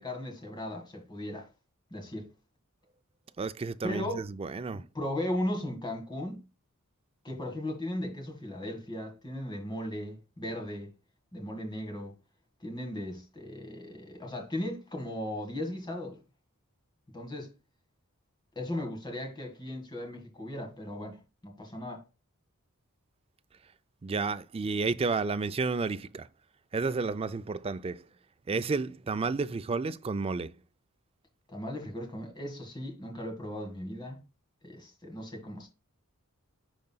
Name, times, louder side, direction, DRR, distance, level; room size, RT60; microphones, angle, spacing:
voice 1, 0.0-1.5 1.9-2.3 3.8-4.2 4.7-6.4 7.2-10.9 11.3-12.1 12.6-16.2 17.1-17.5 18.5-22.0 31.5-34.2 34.6-35.7, left 1 dB, 20° left, 1.8 m, -37 dB
voice 2, 3.4-4.8 24.0-26.3 26.7-28.0 28.5-30.5, right 4 dB, 25° right, 0.3 m, -31 dB
11.0 x 3.8 x 2.3 m
head